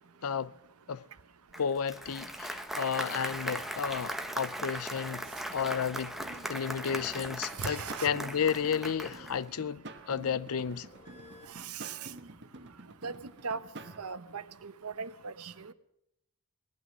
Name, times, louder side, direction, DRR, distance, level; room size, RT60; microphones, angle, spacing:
voice 1, 0.2-0.5 0.9-1.0 1.6-5.2 5.5-6.1 6.5-10.9, left 7 dB, 70° left, 0.5 m, -32 dB
Applause, 1.5-9.4, right 1 dB, ahead, 1.0 m, -39 dB
sound 1, 2.0-11.5, left 1 dB, 40° left, 3.1 m, -57 dB
sound 2, 6.2-14.0, right 2 dB, 50° right, 1.2 m, -49 dB
voice 2, 7.6-8.1 11.6-12.1 13.0-13.1 13.4-13.6 14.0-15.5, right 5 dB, 80° right, 0.8 m, -38 dB
18.0 x 11.5 x 6.1 m
head